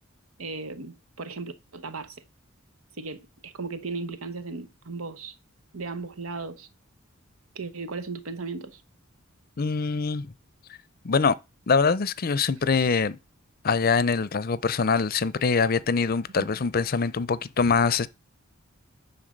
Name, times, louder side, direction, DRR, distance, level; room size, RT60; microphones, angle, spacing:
voice 1, 0.4-2.2 3.0-5.4 5.7-6.7 7.5-8.8 16.4-16.5, right 3 dB, 90° right, 1.0 m, -36 dB
voice 2, 9.6-10.3 11.0-11.4 11.7-13.2 13.6-18.1, left 5 dB, 45° left, 0.5 m, -23 dB
10.0 x 3.8 x 6.5 m
head